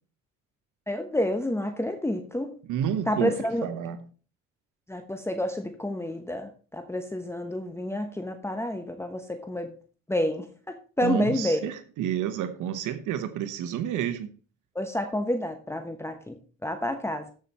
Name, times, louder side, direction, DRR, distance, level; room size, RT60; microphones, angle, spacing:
voice 1, 0.9-2.5 3.1-3.7 4.9-9.7 10.1-11.6 14.7-17.3, left 1 dB, 10° left, 7 dB, 1.1 m, -29 dB
voice 2, 2.7-4.0 11.0-14.3, right 10 dB, 85° right, 10 dB, 1.0 m, -30 dB
14.0 x 5.8 x 4.2 m, 0.39 s
cardioid pair, 90°, 30 cm